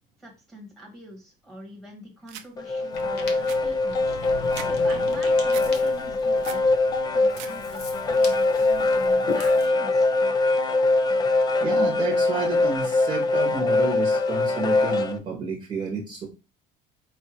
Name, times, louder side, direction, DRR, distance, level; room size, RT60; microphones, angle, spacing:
voice 1, 0.2-4.2 4.7-6.6 7.1-10.1, equal, ahead, -1 dB, 1.4 m, -44 dB
sound 1, 2.3-2.5 2.9-3.0 3.3-4.7 5.0-5.7 6.1-6.7 7.1-7.5 7.8-8.3, right 11 dB, 75° right, 0.6 m, -41 dB
sound 2, 2.6-15.2, left 2 dB, 20° left, 0.3 m, -23 dB
Ocean, 2.9-9.7, left 4 dB, 55° left, 1.0 m, -39 dB
voice 2, 11.6-16.3, right 4 dB, 25° right, -1 dB, 1.0 m, -30 dB
4.8 x 2.4 x 4.3 m, 0.29 s
cardioid pair, 175°, 20 cm